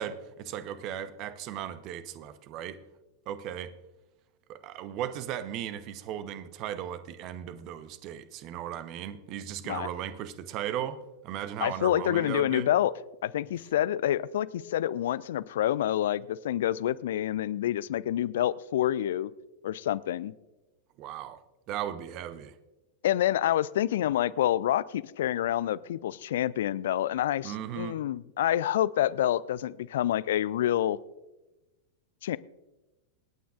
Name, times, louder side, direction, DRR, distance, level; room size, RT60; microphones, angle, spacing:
voice 1, 0.0-2.8 3.3-3.7 4.5-12.7 21.0-21.4 21.7-22.5 27.4-28.0, right 10 dB, 40° right, 13 dB, 0.9 m, -36 dB
voice 2, 11.6-12.9 13.2-19.3 19.6-20.3 23.0-31.0 32.2-32.4, left 12 dB, 60° left, 19 dB, 0.4 m, -27 dB
27.0 x 9.3 x 2.5 m, 1.1 s
figure-of-eight pair, 90°, 0 cm